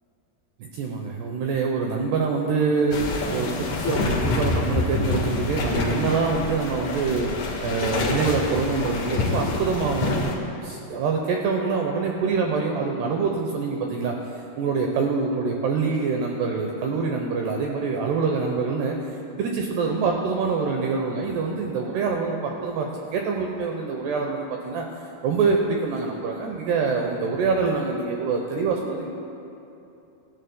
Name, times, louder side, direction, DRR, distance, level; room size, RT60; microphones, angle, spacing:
voice 1, 0.6-3.1 3.3-7.4 7.6-24.9 25.2-29.1, right 4 dB, 85° right, 1 dB, 2.3 m, -25 dB
sound 1, 2.9-10.3, left 3 dB, 75° left, 1.7 m, -27 dB
27.0 x 13.5 x 2.2 m, 2.8 s
omnidirectional pair, 5.9 m